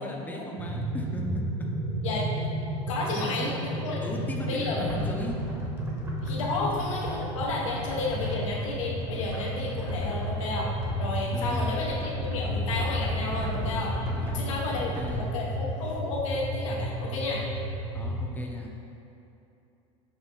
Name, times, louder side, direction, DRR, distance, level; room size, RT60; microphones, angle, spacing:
voice 1, 0.0-1.7 3.1-3.5 4.0-5.4 6.6-6.7 11.3-11.8 14.2-15.4 17.9-18.7, left 1 dB, 10° left, 0 dB, 0.6 m, -37 dB
sound 1, 0.6-18.2, equal, 60° right, 1.0 m, -32 dB
voice 2, 2.9-3.5 3.8-4.0 4.5-4.9 6.2-10.7 11.0-13.9 14.3-17.4, left 3 dB, 85° left, -3 dB, 0.9 m, -32 dB
sound 2, 4.9-15.2, equal, 15° right, 0.9 m, -38 dB
5.8 x 2.2 x 4.3 m, 2.8 s
hypercardioid pair, 95°, 16 cm